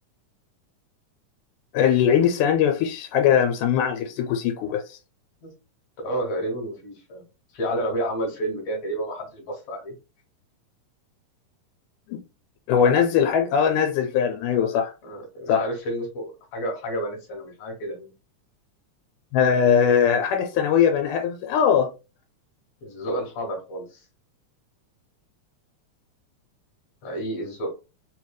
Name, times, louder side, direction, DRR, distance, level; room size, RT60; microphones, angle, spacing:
voice 1, 1.7-5.0 12.1-12.2 12.7-14.9 15.5-15.7 19.3-21.9, left 8 dB, 90° left, 2.1 m, -21 dB
voice 2, 6.0-7.3 7.5-9.9 15.0-18.1 22.8-24.1 27.0-27.7, right 1 dB, 65° left, 2.1 m, -30 dB
4.7 x 3.0 x 2.2 m
omnidirectional pair, 3.5 m